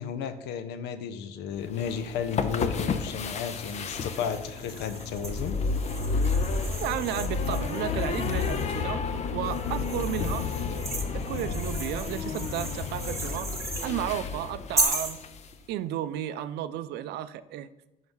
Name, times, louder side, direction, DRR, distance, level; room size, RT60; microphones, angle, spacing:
voice 1, 0.0-5.6, left 7 dB, 85° left, 11 dB, 0.6 m, -33 dB
sound 1, 1.7-15.5, left 5 dB, 40° left, 0.5 m, -31 dB
sound 2, 3.2-8.8 9.4-13.9 14.8-15.2, right 2 dB, 15° right, 0.9 m, -36 dB
voice 2, 6.8-9.1 9.3-10.5 11.1-13.5 13.8-15.2 15.7-17.7, right 12 dB, 80° right, 14 dB, 0.4 m, -33 dB
5.4 x 4.6 x 5.4 m, 1.0 s
cardioid pair, 110°, 17 cm